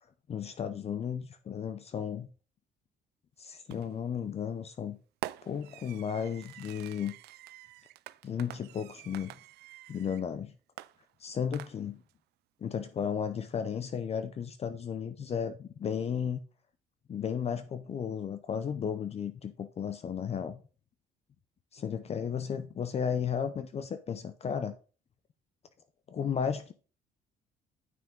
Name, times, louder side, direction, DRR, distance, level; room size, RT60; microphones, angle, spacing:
voice 1, 0.3-2.3 3.4-5.0 5.4-7.1 8.2-9.3 9.9-10.5 11.2-12.0 12.6-16.4 17.1-20.6 21.7-24.7 26.1-26.7, left 7 dB, 40° left, 0.7 m, -34 dB
Fireworks, 3.7-4.1 5.2-10.3 10.8-12.1, right 16 dB, 75° right, 0.4 m, -47 dB
9.4 x 5.8 x 3.7 m
cardioid pair, 110°, 17 cm